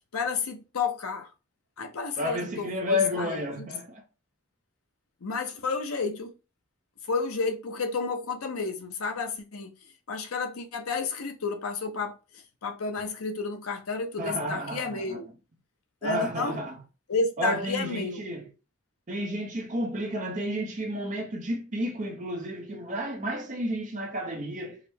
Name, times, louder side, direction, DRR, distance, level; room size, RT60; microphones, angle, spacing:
voice 1, 0.1-1.3 1.8-3.4 5.2-6.3 7.1-9.7 10.1-15.3 16.0-16.6 17.1-18.2, left 4 dB, 85° left, 0.7 m, -31 dB
voice 2, 2.2-4.0 14.2-15.2 16.0-16.8 17.4-18.5 19.1-24.8, left 1 dB, 35° right, 0.7 m, -31 dB
4.8 x 2.1 x 3.4 m
head